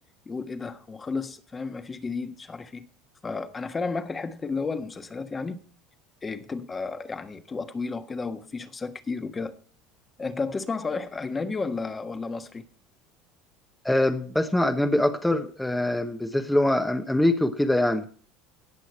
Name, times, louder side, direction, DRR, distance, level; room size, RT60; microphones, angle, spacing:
voice 1, 0.2-2.9 3.2-5.6 6.2-9.5 10.2-12.7, left 4 dB, 20° left, 1.4 m, -32 dB
voice 2, 13.8-18.1, left 1 dB, 5° left, 1.0 m, -23 dB
18.0 x 6.4 x 4.4 m
supercardioid pair, 105°, 0 cm